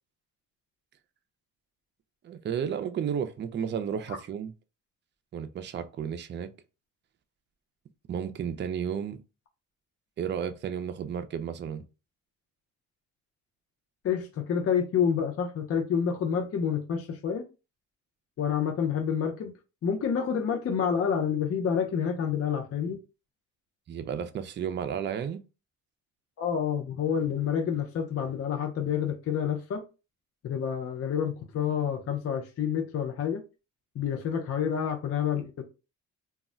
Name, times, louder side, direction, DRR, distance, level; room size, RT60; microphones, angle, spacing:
voice 1, 2.2-4.5 5.3-6.5 8.1-9.2 10.2-11.8 23.9-25.4, right 8 dB, 40° right, 0.4 m, -32 dB
voice 2, 14.0-17.4 18.4-19.5 19.8-23.0 26.4-29.8 30.4-33.4 33.9-35.6, left 7 dB, 50° left, 0.6 m, -28 dB
2.3 x 2.0 x 3.7 m
cardioid pair, 90°, 30 cm